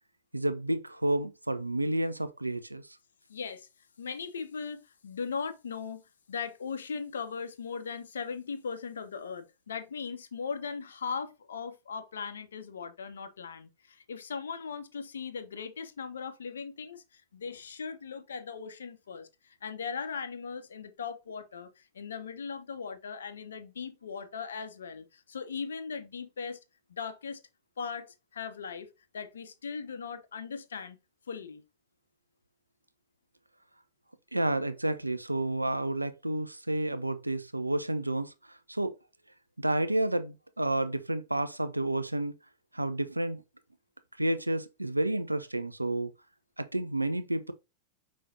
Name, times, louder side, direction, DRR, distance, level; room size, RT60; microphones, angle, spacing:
voice 1, 0.3-2.8 34.3-38.3 38.7-38.9 39.6-42.3 42.7-43.4 44.2-46.1 46.6-47.5, right 1 dB, 85° right, 0.4 m, -30 dB
voice 2, 3.3-3.7 4.0-6.0 6.3-26.6 26.9-27.4 27.8-28.1 28.3-28.9 29.1-31.0 31.3-31.6, left 5 dB, 70° left, 0.6 m, -38 dB
5.5 x 3.2 x 2.6 m
figure-of-eight pair, 90°, 0 cm